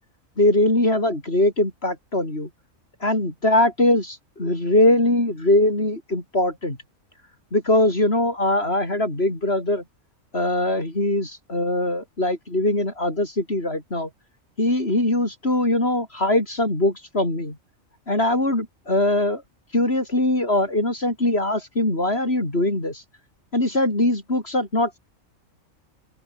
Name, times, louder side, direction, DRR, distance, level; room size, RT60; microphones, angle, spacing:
voice 1, 0.4-2.5 3.0-6.8 7.5-9.8 10.3-14.1 14.6-17.6 18.1-19.4 19.7-23.0 23.5-25.0, left 1 dB, 50° left, 5.7 m, -21 dB
open air
omnidirectional pair, 1.4 m